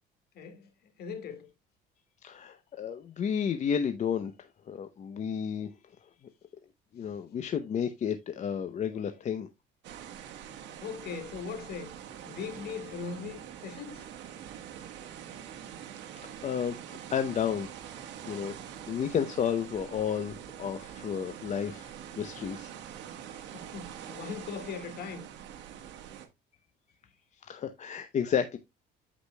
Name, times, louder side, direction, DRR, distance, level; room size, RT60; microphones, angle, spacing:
voice 1, 0.3-0.7 1.0-1.5 10.8-11.9 12.2-14.1 23.5-25.3, left 5 dB, 55° left, 2.0 m, -39 dB
voice 2, 2.2-5.7 6.9-9.5 16.2-17.7 18.3-18.5 18.9-22.7 27.5-28.6, left 8 dB, 35° left, 0.6 m, -32 dB
sound 1, 9.8-26.3, right 9 dB, 65° right, 1.4 m, -45 dB
13.5 x 5.0 x 2.2 m
cardioid pair, 115°, 20 cm